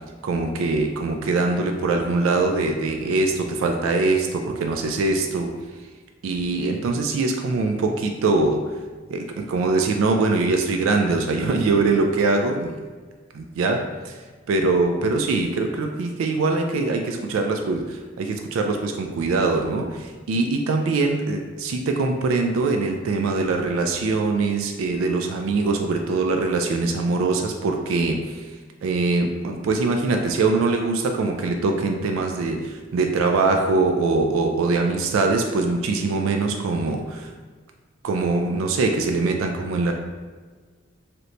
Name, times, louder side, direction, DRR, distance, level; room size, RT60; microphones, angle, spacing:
voice 1, 0.2-5.5 6.2-8.6 9.1-12.7 13.3-14.1 14.5-28.5 28.8-37.3 38.0-39.9, right 3 dB, 85° right, 3 dB, 0.3 m, -23 dB
2.9 x 2.6 x 3.2 m, 1.4 s
head